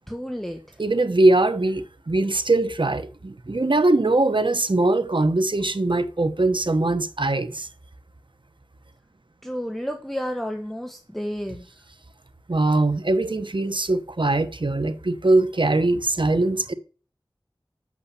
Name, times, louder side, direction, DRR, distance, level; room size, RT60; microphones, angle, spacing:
voice 1, 0.1-0.8 9.4-11.7, equal, 5° left, 1.3 m, -31 dB
voice 2, 0.8-7.7 12.5-16.7, right 2 dB, 65° right, 1.1 m, -21 dB
8.8 x 6.7 x 8.3 m
wide cardioid pair, 45°, 9 cm